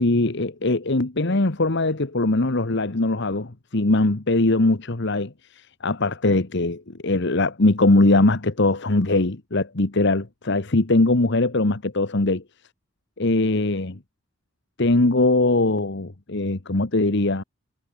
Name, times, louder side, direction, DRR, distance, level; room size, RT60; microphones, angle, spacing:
voice 1, 0.0-12.4 13.2-14.0 14.8-17.4, left 2 dB, 60° left, 1.5 m, -21 dB
head